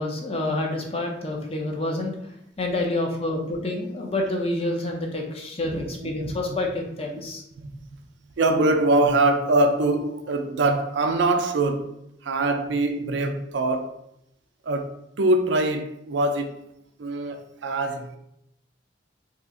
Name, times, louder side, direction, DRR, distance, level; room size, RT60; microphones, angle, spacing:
voice 1, 0.0-2.1 2.6-7.4, left 2 dB, 30° left, 1 dB, 0.5 m, -28 dB
voice 2, 5.6-6.3 7.1-7.2 7.6-8.0 8.4-11.9 12.2-13.9 14.6-14.9 15.2-16.5 17.0-18.2, right 2 dB, 70° right, 5 dB, 0.4 m, -23 dB
2.8 x 2.4 x 3.6 m, 0.79 s
head